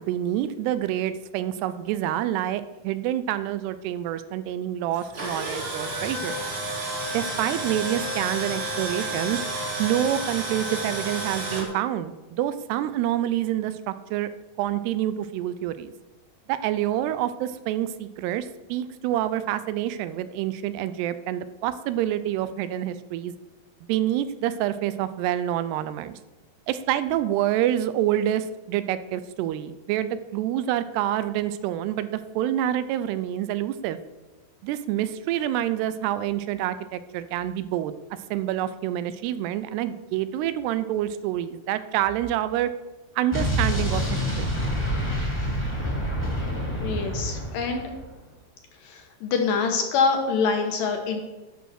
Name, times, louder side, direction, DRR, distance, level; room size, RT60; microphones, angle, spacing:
voice 1, 0.0-6.5 7.1-9.4 9.8-14.3 14.6-15.9 16.5-23.3 23.9-26.1 26.7-34.0 34.6-37.9 38.3-42.7 43.2-44.0 44.4-44.5, right 12 dB, 85° right, 13 dB, 2.7 m, -27 dB
Tools, 4.9-11.6, right 1 dB, 40° right, 2.6 m, -31 dB
Explosion, 43.3-48.1, equal, 5° left, 1.7 m, -27 dB
voice 2, 46.8-47.9 48.8-51.2, left 5 dB, 70° left, 4 dB, 2.3 m, -25 dB
11.5 x 5.5 x 6.4 m, 1.1 s
omnidirectional pair, 4.7 m